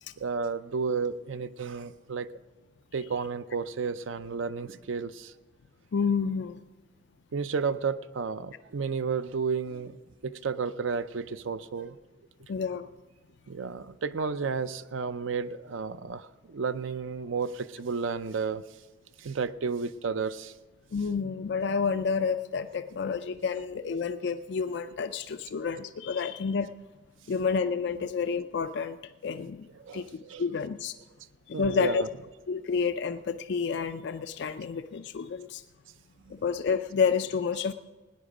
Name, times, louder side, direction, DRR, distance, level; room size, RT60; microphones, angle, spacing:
voice 1, 0.2-2.3 2.9-5.3 7.3-10.0 10.2-12.0 13.5-18.6 19.2-20.5 23.1-23.2 27.9-28.1 29.7-30.5 31.5-32.1 36.3-36.4, right 5 dB, 85° right, 13 dB, 0.5 m, -32 dB
voice 2, 5.9-6.6 12.5-12.9 20.9-26.7 27.3-29.7 29.9-30.1 30.4-30.9 31.5-32.0 32.5-35.6 36.3-37.7, left 5 dB, 60° left, 10 dB, 0.4 m, -29 dB
18.5 x 9.9 x 5.0 m, 1.3 s
head